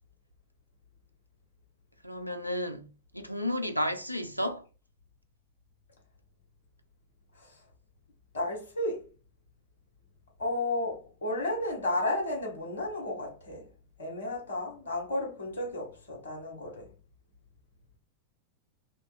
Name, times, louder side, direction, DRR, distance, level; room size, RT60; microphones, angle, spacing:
voice 1, 2.0-2.9 3.1-4.6, left 1 dB, 90° left, 0.3 m, -32 dB
voice 2, 8.3-9.1 10.4-13.7 14.0-16.9, left 1 dB, 70° left, 1.0 m, -33 dB
2.8 x 2.2 x 2.4 m
figure-of-eight pair, 90°, 0 cm